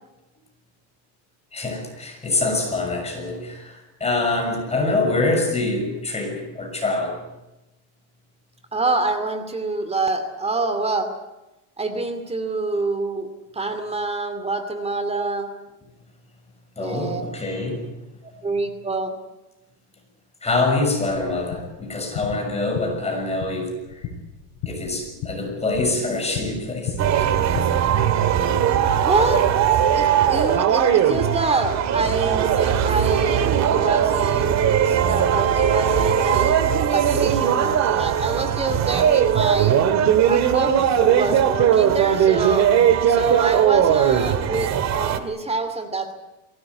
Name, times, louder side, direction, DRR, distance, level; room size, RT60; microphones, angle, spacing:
voice 1, 1.5-7.2 16.8-17.9 20.4-23.7 24.7-27.3, left 2 dB, 15° left, 3 dB, 6.5 m, -25 dB
voice 2, 8.7-11.1 11.8-15.5 16.8-17.2 18.2-19.2 29.0-39.8 40.2-42.7 43.1-46.1, right 3 dB, 15° right, 9 dB, 2.6 m, -26 dB
sound 1, 21.1-27.6, left 7 dB, 50° left, 6.5 m, -35 dB
sound 2, 27.0-45.2, right 9 dB, 40° right, 2.1 m, -19 dB
22.5 x 17.5 x 9.6 m, 0.99 s
supercardioid pair, 130°, 40 cm